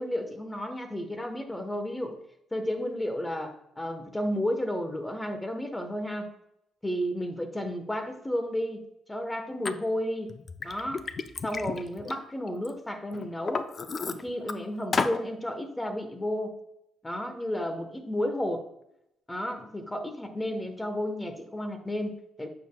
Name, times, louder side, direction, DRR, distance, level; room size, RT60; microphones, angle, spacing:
voice 1, 0.0-2.2 2.5-6.3 6.8-10.4 10.6-11.0 11.4-13.7 14.1-16.5 17.0-18.6 19.3-22.5, left 1 dB, 10° left, 6 dB, 1.2 m, -32 dB
Liquid, 9.6-9.7 10.3-12.7 13.1-14.5 14.9-15.2, left 4 dB, 40° left, 0.5 m, -32 dB
8.9 x 6.9 x 2.3 m, 0.81 s
cardioid pair, 90°, 0 cm